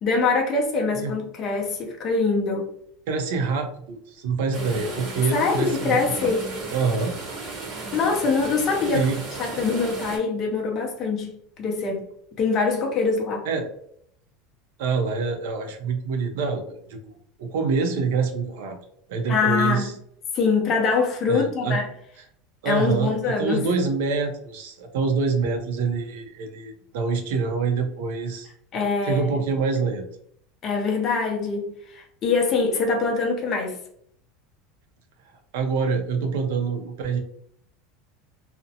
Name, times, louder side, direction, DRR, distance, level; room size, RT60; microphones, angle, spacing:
voice 1, 0.0-2.7 5.3-6.5 7.9-9.1 9.4-12.1 12.4-13.5 19.3-19.9 20.3-21.8 22.6-23.6 28.7-29.4 30.6-33.8, left 4 dB, 30° left, 1 dB, 0.6 m, -24 dB
voice 2, 3.1-6.3 6.7-7.1 8.9-9.2 13.4-13.7 14.8-17.1 17.4-18.8 19.1-19.9 21.3-21.8 22.6-23.1 23.4-28.5 29.0-30.0 35.5-37.2, right 4 dB, 75° right, 5 dB, 0.6 m, -26 dB
sound 1, 4.5-10.2, right 3 dB, 35° right, 0.8 m, -34 dB
2.5 x 2.0 x 2.7 m, 0.67 s
supercardioid pair, 165°, 0 cm